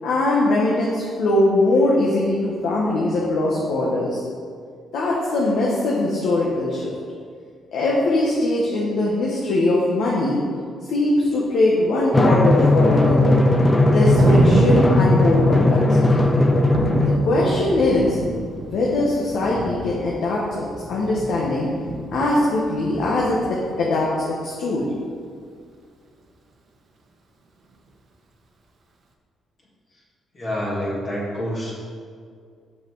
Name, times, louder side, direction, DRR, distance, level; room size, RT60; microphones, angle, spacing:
voice 1, 0.0-4.2 4.9-6.9 7.7-10.4 10.9-13.4 13.9-16.3 17.0-18.2 18.7-21.7 22.1-24.9, left 2 dB, 75° left, -5 dB, 1.1 m, -21 dB
Thunder, 12.0-23.8, right 2 dB, 55° right, 0.9 m, -28 dB
Drum, 12.1-17.2, left 2 dB, 20° left, 0.5 m, -17 dB
voice 2, 30.3-31.7, equal, 40° left, -6 dB, 1.9 m, -27 dB
5.8 x 5.6 x 4.6 m, 2.1 s
cardioid pair, 90°, 0 cm